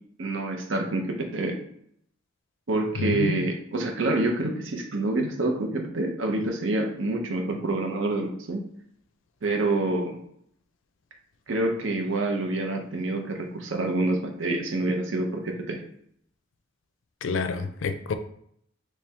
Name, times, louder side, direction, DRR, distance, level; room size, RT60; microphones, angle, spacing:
voice 1, 0.2-1.6 2.7-8.6 9.4-10.2 11.5-15.8, right 2 dB, 75° right, 0.7 m, -27 dB
voice 2, 3.0-3.5 17.2-18.1, left 5 dB, 75° left, 0.4 m, -28 dB
3.4 x 3.2 x 2.8 m
head